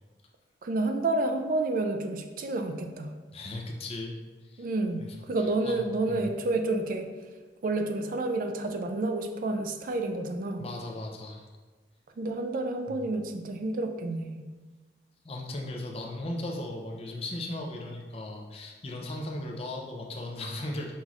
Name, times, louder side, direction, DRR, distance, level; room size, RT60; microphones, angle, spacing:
voice 1, 0.6-3.1 4.6-7.1 7.6-10.6 12.2-14.5, right 2 dB, 45° right, 6 dB, 0.3 m, -29 dB
voice 2, 3.3-4.1 4.4-4.7 5.0-5.1 5.6-6.3 10.6-11.5 12.9-13.0 15.2-20.9, left 1 dB, 30° left, 1 dB, 0.5 m, -37 dB
5.4 x 3.0 x 2.4 m, 1.3 s
head